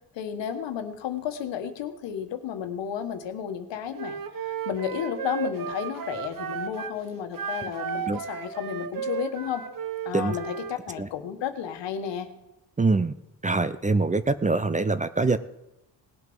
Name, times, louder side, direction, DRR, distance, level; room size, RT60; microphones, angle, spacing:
voice 1, 0.1-9.6 10.0-12.3, left 8 dB, 75° left, 7 dB, 1.5 m, -32 dB
Wind instrument woodwind instrument, 4.0-7.0 7.3-10.8, right 7 dB, 50° right, 1.2 m, -34 dB
voice 2, 12.8-13.1 13.4-15.4, right 3 dB, 15° right, 12 dB, 0.6 m, -24 dB
18.5 x 7.6 x 5.5 m, 0.94 s
supercardioid pair, 70°, 44 cm